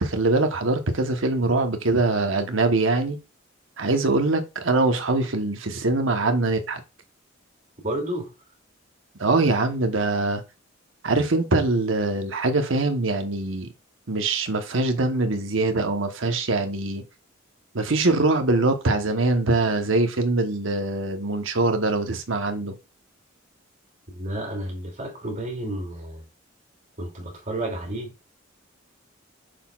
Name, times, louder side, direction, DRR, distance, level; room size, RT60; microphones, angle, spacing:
voice 1, 0.0-3.2 3.8-6.8 9.2-10.4 11.0-13.7 14.1-17.0 17.7-22.7, right 2 dB, 70° right, 1.1 m, -23 dB
voice 2, 7.8-8.3 24.1-26.2 27.0-28.1, right 1 dB, 40° right, 2.6 m, -31 dB
6.5 x 6.0 x 2.4 m
head